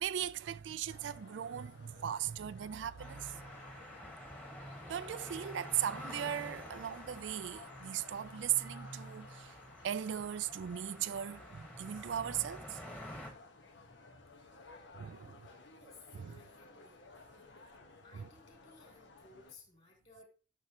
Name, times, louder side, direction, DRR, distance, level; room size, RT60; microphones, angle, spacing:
voice 1, 0.0-3.4 4.9-9.5 9.8-12.8 15.0-15.5 16.2-16.3 18.1-18.2, right 10 dB, 75° right, 0.4 m, -38 dB
sound 1, 0.9-19.5, left 3 dB, 75° left, 1.2 m, -57 dB
sound 2, 3.0-13.3, equal, 10° left, 1.4 m, -49 dB
voice 2, 16.3-17.2 17.6-17.7 18.0-20.3, left 2 dB, 30° left, 3.0 m, -59 dB
9.8 x 6.8 x 2.9 m
head